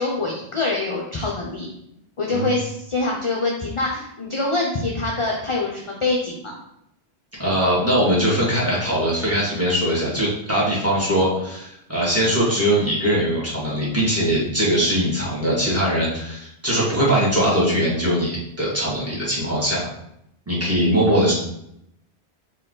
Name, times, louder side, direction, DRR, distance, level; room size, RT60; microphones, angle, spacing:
voice 1, 0.0-1.7 2.2-6.6, left 3 dB, 35° left, -2 dB, 0.5 m, -25 dB
voice 2, 7.4-19.9 20.5-21.3, equal, 15° right, -6 dB, 1.7 m, -21 dB
4.6 x 3.0 x 3.8 m, 0.78 s
omnidirectional pair, 1.1 m